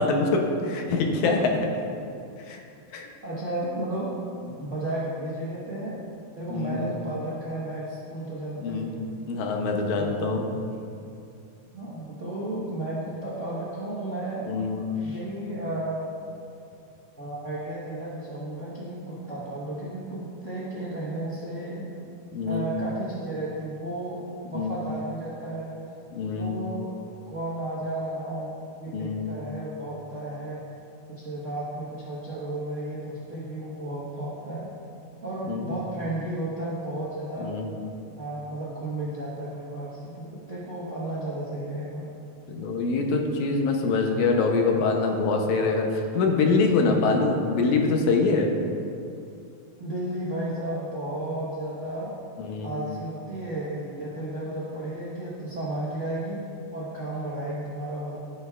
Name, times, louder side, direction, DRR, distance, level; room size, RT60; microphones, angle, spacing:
voice 1, 0.0-1.4 2.5-2.6 2.9-3.1 4.5-4.6 6.5-6.8 8.6-8.9 9.3-10.4 14.5-14.8 22.3-22.7 24.5-24.7 26.1-26.5 28.9-29.3 35.5-35.7 37.4-37.7 42.5-48.5 52.4-52.7, left 3 dB, 80° left, 2 dB, 2.2 m, -24 dB
voice 2, 1.0-1.4 3.2-4.1 4.6-6.0 6.3-9.0 10.0-10.4 11.7-14.5 15.0-16.1 17.1-21.8 22.4-24.2 24.5-25.8 26.3-27.0 27.3-30.6 31.2-34.7 35.2-37.5 38.1-42.0 46.8-47.1 49.8-52.1 52.6-56.4 56.7-58.2, right 1 dB, 55° right, -8 dB, 0.8 m, -33 dB
14.5 x 6.4 x 2.4 m, 2.5 s
omnidirectional pair, 3.3 m